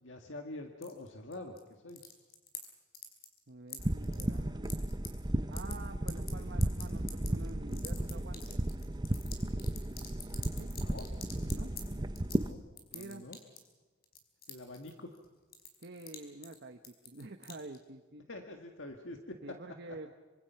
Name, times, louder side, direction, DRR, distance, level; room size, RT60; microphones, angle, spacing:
voice 1, 0.0-2.0 10.7-11.1 12.2-12.6 12.9-13.4 14.5-15.1 18.3-19.4, left 2 dB, 70° left, 4 dB, 1.8 m, -46 dB
sound 1, 0.8-1.6 1.9-2.7 2.9-3.4 3.7-5.1 5.4-5.7 6.1-11.8 12.2-12.4 12.8-13.7 14.0-15.3 15.5-16.2 16.4-16.5 16.8-17.8, left 7 dB, 55° left, 4.9 m, -46 dB
voice 2, 3.5-4.7 5.5-8.6 10.6-10.7 11.4-11.7 12.5-13.2 15.8-18.3 19.4-20.1, right 2 dB, 55° right, 5 dB, 1.1 m, -48 dB
sound 2, 3.8-12.5, right 1 dB, 20° right, 0.7 m, -34 dB
26.0 x 26.0 x 5.8 m, 1.3 s
head